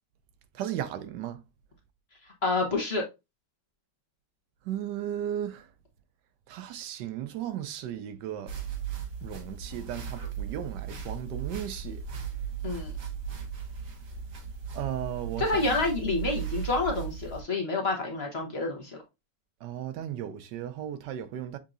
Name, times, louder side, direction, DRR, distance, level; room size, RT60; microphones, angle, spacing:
voice 1, 0.6-1.4 4.7-5.7 6.5-8.5 9.2-12.0 14.7-15.7 19.6-21.6, right 10 dB, 80° right, 1.2 m, -35 dB
voice 2, 2.4-3.0 12.6-12.9 15.4-19.0, left 3 dB, 45° left, 1.0 m, -28 dB
sound 1, 8.5-17.4, right 7 dB, 55° right, 1.3 m, -37 dB
6.9 x 2.7 x 2.5 m
omnidirectional pair, 1.8 m